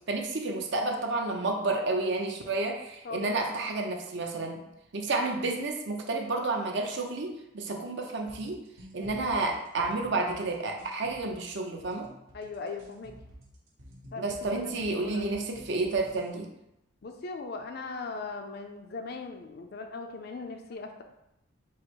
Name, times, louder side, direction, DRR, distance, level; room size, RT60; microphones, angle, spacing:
voice 1, 0.1-4.6 4.9-8.6 8.9-12.1 14.2-16.5, right 3 dB, 60° right, 2 dB, 0.6 m, -30 dB
voice 2, 3.0-3.4 8.9-9.2 12.3-13.1 14.1-15.3 17.0-21.0, left 3 dB, 50° left, 5 dB, 0.4 m, -39 dB
sound 1, 8.3-16.3, equal, 75° right, 1.2 m, -50 dB
4.6 x 2.0 x 4.6 m, 0.86 s
head